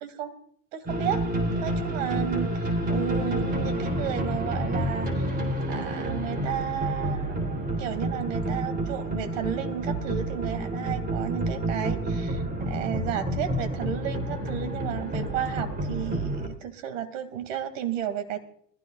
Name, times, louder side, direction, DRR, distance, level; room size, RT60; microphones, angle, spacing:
voice 1, 0.0-0.3 0.7-5.3 5.7-18.4, right 9 dB, 70° right, 9 dB, 2.4 m, -33 dB
sound 1, 0.9-16.5, right 1 dB, 25° right, 3.6 m, -29 dB
21.0 x 15.5 x 2.4 m, 0.63 s
hypercardioid pair, 105°, 39 cm